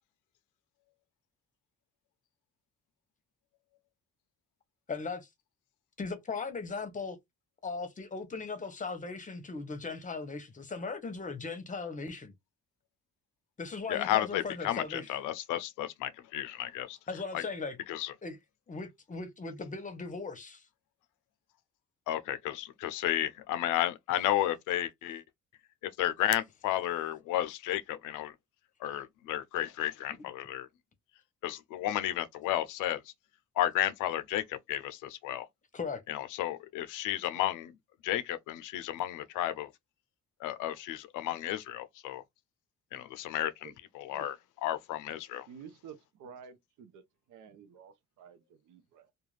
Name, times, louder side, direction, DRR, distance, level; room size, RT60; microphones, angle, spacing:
voice 1, 4.9-5.3 6.0-7.2 7.6-12.3 13.6-15.1 17.1-17.8 18.2-18.4 18.7-20.7 35.7-36.0, left 4 dB, 25° left, 0.7 m, -38 dB
voice 2, 13.9-17.0 17.3-17.4 17.9-18.1 22.1-25.2 26.0-28.3 28.8-30.7 31.4-33.0 33.6-35.5 36.1-37.7 38.0-39.7 40.4-42.2 42.9-44.4 44.6-45.5, left 13 dB, 85° left, 0.5 m, -32 dB
voice 3, 45.5-47.0 47.3-49.1, right 7 dB, 80° right, 0.7 m, -51 dB
2.4 x 2.3 x 3.2 m
cardioid pair, 90°, 30 cm